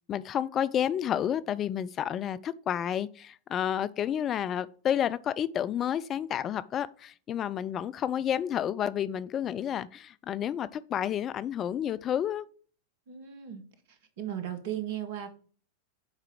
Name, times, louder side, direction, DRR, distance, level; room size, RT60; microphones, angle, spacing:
voice 1, 0.1-12.5, left 9 dB, 30° left, 0.3 m, -30 dB
voice 2, 13.1-13.7 14.2-15.3, right 11 dB, 50° right, 1.4 m, -36 dB
7.3 x 4.8 x 4.9 m
figure-of-eight pair, 90°, 0 cm